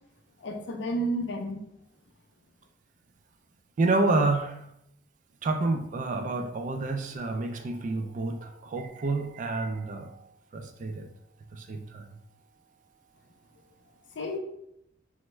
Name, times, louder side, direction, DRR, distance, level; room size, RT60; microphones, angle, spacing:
voice 1, 0.4-1.6 14.2-14.4, right 1 dB, 65° left, 4 dB, 0.5 m, -31 dB
voice 2, 3.8-4.6 5.4-10.3 10.5-11.1 11.5-12.1, right 2 dB, 40° right, 6 dB, 0.3 m, -29 dB
3.3 x 2.1 x 3.1 m, 0.77 s
head